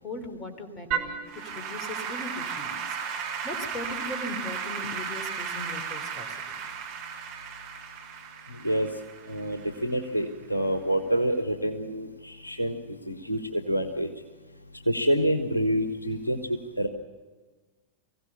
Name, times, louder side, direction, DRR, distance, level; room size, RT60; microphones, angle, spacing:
voice 1, 0.0-1.2 1.4-6.4, left 2 dB, 25° left, 6 dB, 3.3 m, -39 dB
Applause / Keyboard (musical), 0.9-10.2, right 7 dB, 50° right, 3.1 m, -35 dB
voice 2, 8.5-9.0 9.2-14.1 14.8-16.9, right 1 dB, 85° left, 6 dB, 1.4 m, -27 dB
24.0 x 16.0 x 6.9 m, 1.4 s
figure-of-eight pair, 90°, 0 cm